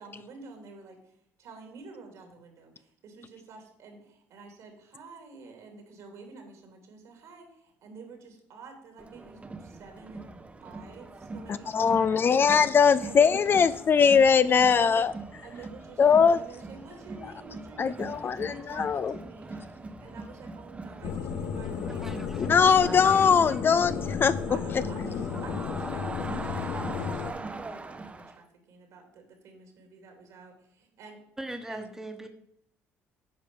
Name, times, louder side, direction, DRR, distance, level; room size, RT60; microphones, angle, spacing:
voice 1, 0.0-10.3 10.6-12.6 13.0-13.6 14.4-15.1 15.4-22.4 24.5-31.2 31.7-31.9, right 4 dB, 70° right, 3.1 m, -49 dB
Crowd, 9.0-28.4, right 3 dB, 25° right, 0.9 m, -41 dB
voice 2, 11.7-15.1 16.0-16.4 17.8-19.1 22.4-24.3, left 6 dB, 40° left, 0.5 m, -21 dB
sound 1, 21.0-27.3, left 7 dB, 70° left, 0.9 m, -33 dB
voice 3, 21.8-23.6 31.4-32.3, right 1 dB, 10° right, 1.4 m, -40 dB
9.5 x 5.0 x 7.0 m
supercardioid pair, 75°, 6 cm